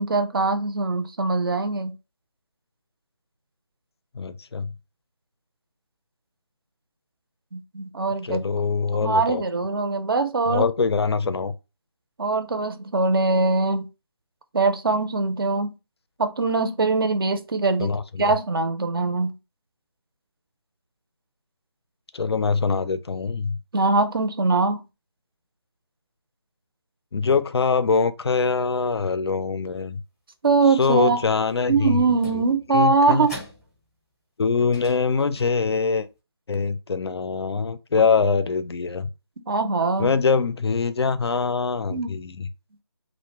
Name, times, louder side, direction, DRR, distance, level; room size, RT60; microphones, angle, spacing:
voice 1, 0.0-1.9 7.5-8.4 9.0-10.7 12.2-13.9 14.5-15.7 16.2-19.3 23.7-24.8 30.4-31.2 31.7-33.4 39.5-40.1 41.9-42.1, right 3 dB, 55° right, 0.5 m, -22 dB
voice 2, 4.1-4.7 8.2-9.4 10.5-11.5 17.8-18.3 22.1-23.6 27.1-30.0 30.8-32.0 32.7-33.3 34.4-36.1 36.5-39.1 40.0-42.5, left 5 dB, 65° left, 0.4 m, -23 dB
sound 1, 30.7-31.5 32.0-34.1 34.6-36.0, equal, ahead, 0.6 m, -44 dB
2.4 x 2.1 x 2.9 m
figure-of-eight pair, 165°, 14 cm